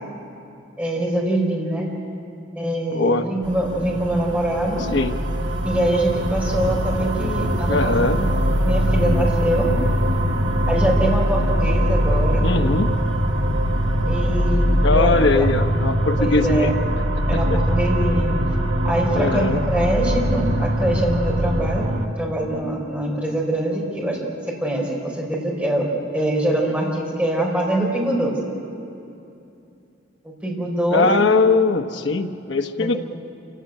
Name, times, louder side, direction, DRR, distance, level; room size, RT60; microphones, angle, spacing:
voice 1, 0.8-1.9 2.6-4.9 5.6-8.3 8.6-9.7 10.7-12.5 14.1-15.5 16.2-16.7 17.3-18.3 18.8-21.9 22.2-24.2 24.5-25.9 26.1-28.4 30.2-31.3 32.8-33.0, right 1 dB, 10° right, -2 dB, 4.4 m, -23 dB
voice 2, 2.9-3.3 4.9-5.1 7.7-8.2 12.4-12.9 14.8-16.7 17.1-17.4 19.1-19.6 30.9-33.0, left 3 dB, 65° left, 6 dB, 1.1 m, -20 dB
sound 1, 3.4-22.1, equal, 75° right, 1.7 m, -22 dB
27.5 x 15.5 x 9.1 m, 2.7 s
head